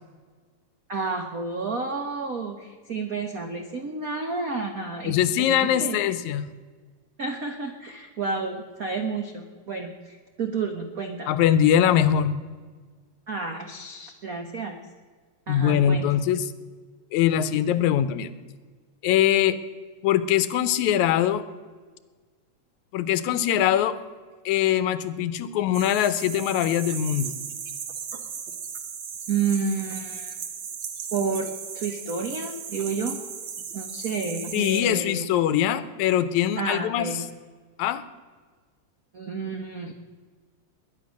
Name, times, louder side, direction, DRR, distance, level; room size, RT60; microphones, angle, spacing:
voice 1, 0.9-6.0 7.2-11.3 13.3-14.8 15.5-16.1 29.3-30.3 31.1-31.5 31.7-33.2 33.7-35.3 36.6-37.2 39.1-39.9, right 4 dB, 85° right, 5 dB, 0.7 m, -30 dB
voice 2, 5.1-6.5 11.3-12.4 15.5-16.5 17.1-18.3 19.0-19.6 20.0-21.4 22.9-24.0 24.5-27.4 34.5-37.1 37.8-38.0, left 10 dB, 85° left, 14 dB, 2.1 m, -22 dB
sound 1, 25.7-34.8, right 7 dB, 55° right, 1.6 m, -36 dB
20.5 x 10.0 x 6.4 m, 1.5 s
omnidirectional pair, 3.4 m